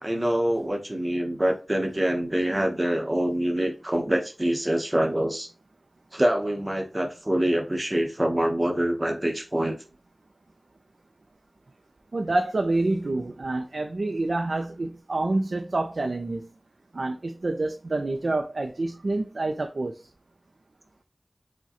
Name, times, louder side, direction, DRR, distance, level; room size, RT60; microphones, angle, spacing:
voice 1, 0.0-5.5 6.1-9.7, right 1 dB, 30° right, 0.8 m, -25 dB
voice 2, 12.1-16.5 16.9-20.0, right 2 dB, 80° right, 0.4 m, -27 dB
4.6 x 2.2 x 2.8 m
wide cardioid pair, 45°, 0 cm